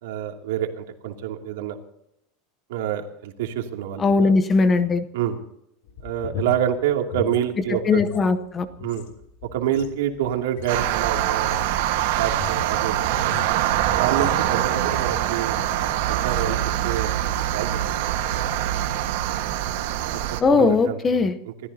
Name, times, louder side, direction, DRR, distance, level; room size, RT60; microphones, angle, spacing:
voice 1, 0.0-1.8 2.7-4.4 5.1-5.4 6.0-8.0 8.8-9.1 9.5-11.7 12.1-13.4 13.9-15.6 16.1-17.1 17.5-17.8 20.1-20.2 20.5-21.5, right 10 dB, 80° right, 3 dB, 2.7 m, -27 dB
voice 2, 4.0-5.0 7.9-8.7 20.4-21.3, left 4 dB, 15° left, 11 dB, 0.8 m, -19 dB
sound 1, 5.8-8.2 8.5-15.2 15.6-15.9 16.2-16.6, left 7 dB, 75° left, 3.0 m, -38 dB
sound 2, 10.7-20.4, right 12 dB, 65° right, 1.5 m, -24 dB
29.0 x 14.5 x 2.8 m, 0.78 s
supercardioid pair, 170°, 0 cm